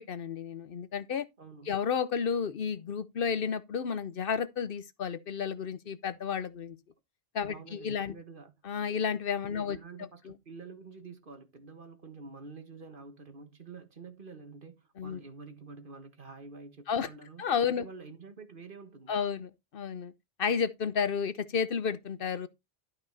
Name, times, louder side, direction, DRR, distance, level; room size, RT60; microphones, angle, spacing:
voice 1, 0.0-1.2 1.7-6.8 7.3-8.2 8.6-9.8 10.3-10.4 15.0-15.2 16.9-17.1 17.4-17.8 19.1-20.1 20.4-22.5, left 6 dB, 60° left, 0.9 m, -32 dB
voice 2, 1.4-1.7 7.4-8.5 9.5-19.2, right 4 dB, 55° right, 1.6 m, -48 dB
12.0 x 5.4 x 4.0 m
omnidirectional pair, 1.1 m